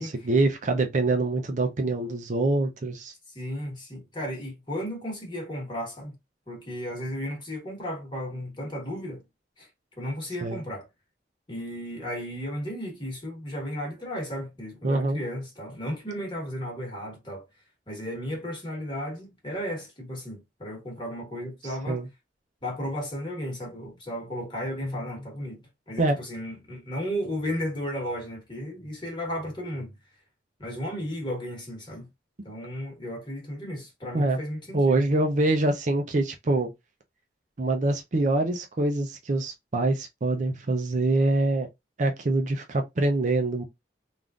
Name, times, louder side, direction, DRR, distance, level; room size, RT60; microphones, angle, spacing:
voice 1, 0.0-3.1 10.4-10.6 14.8-15.2 21.9-22.1 26.0-26.2 34.1-34.4 34.7-36.7 37.6-41.7 42.0-43.6, right 2 dB, 40° right, 0.5 m, -25 dB
voice 2, 3.3-6.1 6.5-9.2 9.6-9.7 10.0-10.9 11.5-17.5 17.9-22.0 22.6-29.9 30.6-32.1 32.4-35.0, equal, 25° left, 1.3 m, -34 dB
3.5 x 2.5 x 2.4 m
head